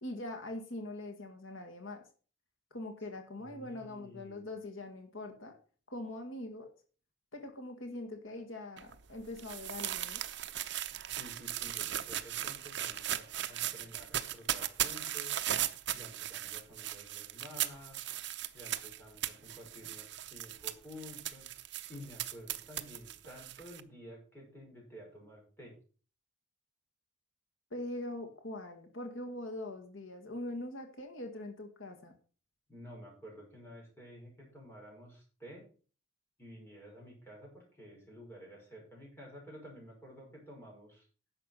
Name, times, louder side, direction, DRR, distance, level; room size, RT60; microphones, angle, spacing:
voice 1, 0.0-2.0 2.7-5.6 5.9-6.7 7.3-10.2 27.7-32.1, left 1 dB, 90° left, 4 dB, 2.0 m, -42 dB
voice 2, 3.4-4.5 11.1-15.4 15.9-18.0 18.5-21.5 21.9-25.7 32.7-35.7 36.4-41.1, equal, 10° left, -2 dB, 5.5 m, -51 dB
sound 1, 8.8-23.8, right 12 dB, 60° right, 0.7 m, -38 dB
11.0 x 6.8 x 5.8 m, 0.39 s
head